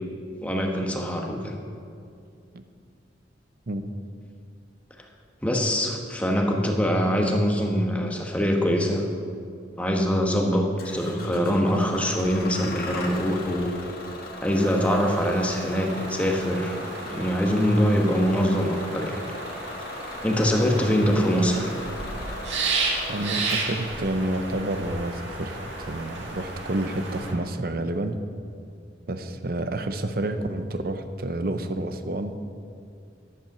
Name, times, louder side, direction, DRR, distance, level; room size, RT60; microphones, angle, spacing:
voice 1, 0.4-1.6 5.4-9.0 9.8-13.7 14.4-19.2 20.2-21.8, equal, 5° left, 1 dB, 1.1 m, -23 dB
Bus / Engine starting, 10.8-27.0, left 2 dB, 55° left, 1.6 m, -39 dB
sound 1, 14.5-27.3, right 3 dB, 90° right, 1.7 m, -33 dB
voice 2, 23.1-28.2 29.1-32.3, right 1 dB, 55° right, 8 dB, 0.7 m, -29 dB
10.5 x 8.5 x 6.0 m, 2.4 s
head